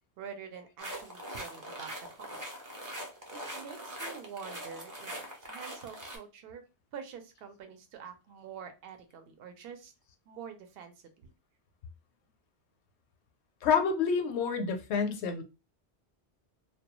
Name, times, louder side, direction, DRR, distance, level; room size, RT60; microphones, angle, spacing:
voice 1, 0.2-2.5 3.5-6.6 6.9-9.9 10.3-11.3, right 7 dB, 65° right, 0.8 m, -46 dB
sound 1, 0.8-6.2, right 1 dB, 25° right, 0.5 m, -42 dB
voice 2, 13.6-15.4, left 6 dB, 80° left, 0.9 m, -28 dB
2.2 x 2.2 x 2.9 m
omnidirectional pair, 1.1 m